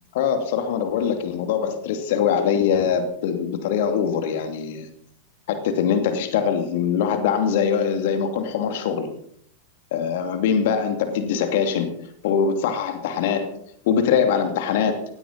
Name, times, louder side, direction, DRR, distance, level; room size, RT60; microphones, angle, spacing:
voice 1, 0.1-4.9 5.5-9.1 9.9-11.9 12.2-13.5 13.8-15.0, left 7 dB, 50° left, 7 dB, 2.6 m, -22 dB
17.0 x 17.0 x 4.1 m, 0.65 s
figure-of-eight pair, 90°, 0 cm